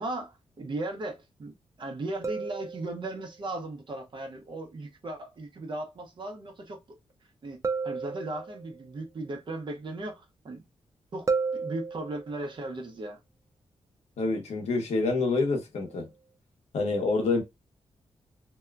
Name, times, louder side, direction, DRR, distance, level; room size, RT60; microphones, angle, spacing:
voice 1, 0.0-7.0 7.4-10.6 11.1-13.2, right 2 dB, 50° right, 0.8 m, -37 dB
sound 1, 2.2-3.3 7.6-8.9 11.3-12.5 15.8-16.0, right 4 dB, 30° right, 0.3 m, -33 dB
voice 2, 14.2-16.1 16.7-17.4, left 3 dB, 85° left, 1.0 m, -27 dB
2.7 x 2.2 x 2.3 m
wide cardioid pair, 105°, 11 cm